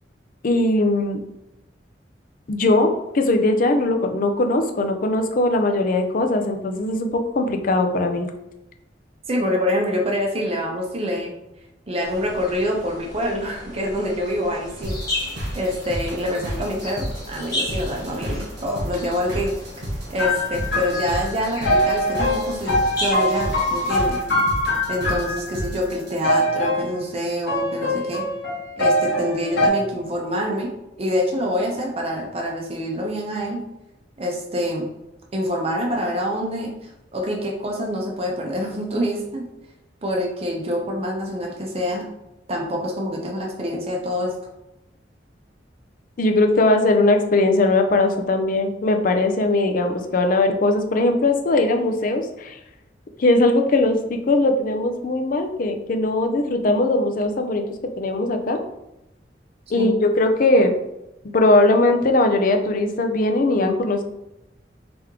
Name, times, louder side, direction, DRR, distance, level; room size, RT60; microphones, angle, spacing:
voice 1, 0.4-1.2 2.5-8.3 46.2-52.6 53.2-57.7 58.0-58.6 59.7-60.7 61.3-64.0, left 2 dB, 50° left, 5 dB, 0.5 m, -20 dB
voice 2, 9.3-11.3 11.9-14.9 15.2-19.5 20.1-24.2 24.9-28.2 28.8-30.7 31.0-33.6 34.2-34.9 35.3-39.5 40.0-42.0 42.5-44.3 59.8-60.0, equal, 35° right, 0 dB, 0.6 m, -26 dB
sound 1, 12.0-24.0, left 1 dB, 20° left, 0.9 m, -35 dB
sound 2, 14.8-26.2, equal, 75° right, 1.1 m, -32 dB
sound 3, 20.2-25.7 26.2-26.9 27.5-29.7, left 1 dB, 80° left, 1.2 m, -23 dB
3.4 x 3.0 x 3.6 m, 0.90 s
head